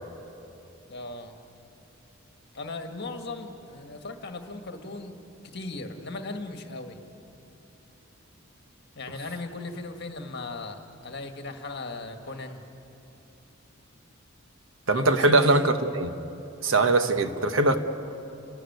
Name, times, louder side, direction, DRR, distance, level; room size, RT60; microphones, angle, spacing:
voice 1, 0.9-1.4 2.5-5.2 5.4-7.0 8.9-12.6 14.8-15.6, left 3 dB, 50° left, 5 dB, 1.7 m, -38 dB
voice 2, 14.9-16.1 16.6-17.8, right 2 dB, 70° right, 8 dB, 1.2 m, -21 dB
30.0 x 13.0 x 9.3 m, 2.9 s
head